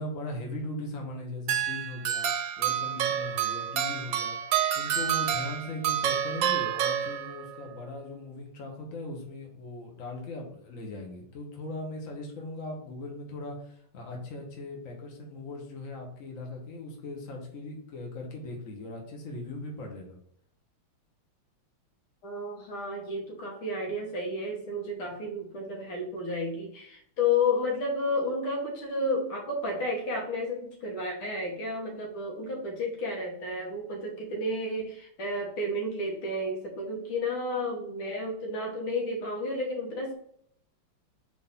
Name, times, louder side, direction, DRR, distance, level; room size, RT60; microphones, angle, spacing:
voice 1, 0.0-20.2, left 2 dB, 40° left, 0 dB, 1.5 m, -39 dB
sound 1, 1.5-7.6, right 10 dB, 70° right, 1.2 m, -29 dB
voice 2, 22.2-40.1, left 2 dB, 70° left, -1 dB, 2.3 m, -31 dB
4.7 x 4.0 x 5.5 m, 0.66 s
omnidirectional pair, 2.4 m